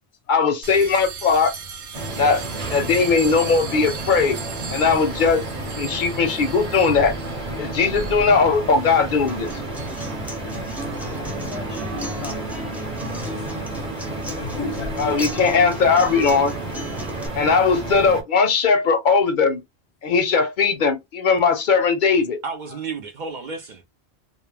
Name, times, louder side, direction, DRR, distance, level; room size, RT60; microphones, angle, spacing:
voice 1, 0.3-1.5 2.2-2.4 2.7-4.4 4.7-5.4 5.8-7.1 7.6-9.6 15.0-16.5 17.3-19.6 20.0-22.4, left 5 dB, 55° left, 0.6 m, -19 dB
sound 1, 0.6-12.3, right 4 dB, 85° right, 0.9 m, -37 dB
sound 2, 1.9-18.2, right 2 dB, 40° right, 0.9 m, -32 dB
Acoustic guitar, 9.3-17.3, right 1 dB, ahead, 0.4 m, -34 dB
voice 2, 11.2-12.5 13.1-13.5 14.1-15.2, left 5 dB, 85° left, 0.9 m, -37 dB
voice 3, 22.4-23.9, right 4 dB, 55° right, 0.6 m, -32 dB
2.2 x 2.1 x 3.2 m
omnidirectional pair, 1.1 m